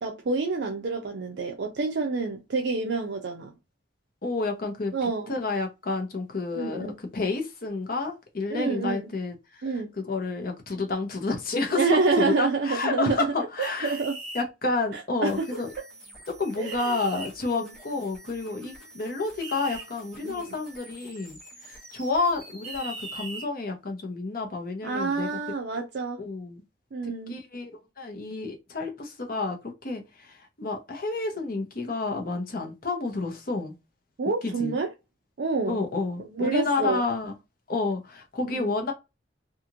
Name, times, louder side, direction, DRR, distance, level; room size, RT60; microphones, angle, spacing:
voice 1, 0.0-3.5 4.9-5.3 6.6-7.0 8.5-9.1 9.6-9.9 11.7-13.3 13.6-14.2 14.9-15.6 16.6-17.0 17.6-17.7 20.2-20.6 24.8-26.2 26.9-27.4 34.2-34.9 35.4-35.8 36.3-37.0 38.5-38.7, right 4 dB, 65° right, 0.5 m, -28 dB
voice 2, 4.2-4.9 5.3-9.6 10.0-14.0 14.3-15.7 16.4-21.4 21.6-25.3 26.2-26.6 27.0-27.7 28.0-33.7 34.4-34.7 35.7-37.4 37.7-38.9, left 3 dB, 50° left, 0.8 m, -30 dB
sound 1, 13.6-14.5 16.7-17.3 19.4-19.8 22.6-23.5, right 3 dB, 45° right, 1.1 m, -39 dB
sound 2, 15.2-23.2, right 1 dB, ahead, 1.3 m, -49 dB
2.9 x 2.4 x 2.5 m
head